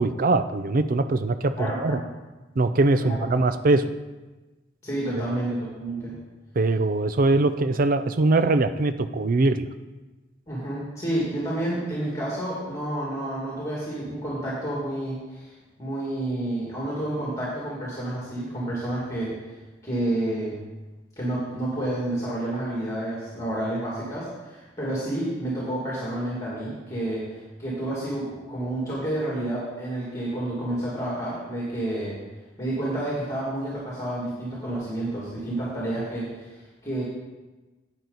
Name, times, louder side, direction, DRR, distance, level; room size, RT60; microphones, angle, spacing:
voice 1, 0.0-2.0 2.6-3.8 6.6-9.7, right 2 dB, 45° right, 11 dB, 0.5 m, -22 dB
voice 2, 1.6-2.1 3.0-3.2 4.8-6.2 10.5-19.6 19.8-20.6 21.2-32.2 32.6-37.0, right 1 dB, 15° left, -6 dB, 2.2 m, -30 dB
10.5 x 8.2 x 4.0 m, 1.2 s
head